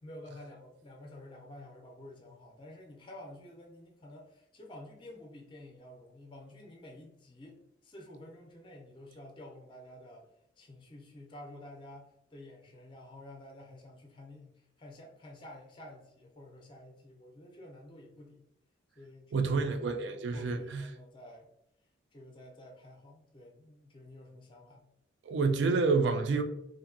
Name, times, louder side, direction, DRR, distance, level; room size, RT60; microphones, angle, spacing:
voice 1, 0.0-7.6 7.8-10.2 10.6-18.5 19.0-21.5 22.1-24.8, left 1 dB, 25° left, 0.4 m, -51 dB
voice 2, 19.3-20.9 25.3-26.4, right 4 dB, 70° right, 0.3 m, -28 dB
2.7 x 2.6 x 2.5 m
head